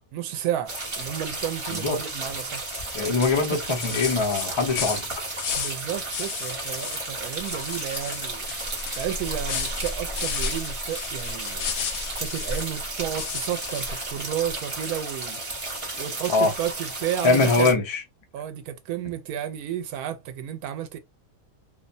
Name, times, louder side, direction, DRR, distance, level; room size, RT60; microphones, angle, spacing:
voice 1, 0.1-2.7 3.5-3.6 5.6-8.5 8.9-11.6 12.2-15.4 16.0-17.8 18.3-21.0, right 10 dB, 85° right, 1.1 m, -32 dB
sound 1, 0.7-17.7, right 2 dB, 25° right, 0.9 m, -33 dB
sound 2, 2.7-2.9 3.2-5.8 6.1-7.0 7.3-12.8 13.2-14.1, left 8 dB, 75° left, 1.0 m, -34 dB
voice 2, 2.9-5.1 16.3-16.5 17.2-18.0, left 3 dB, 45° left, 0.3 m, -22 dB
2.7 x 2.1 x 2.5 m
omnidirectional pair, 1.6 m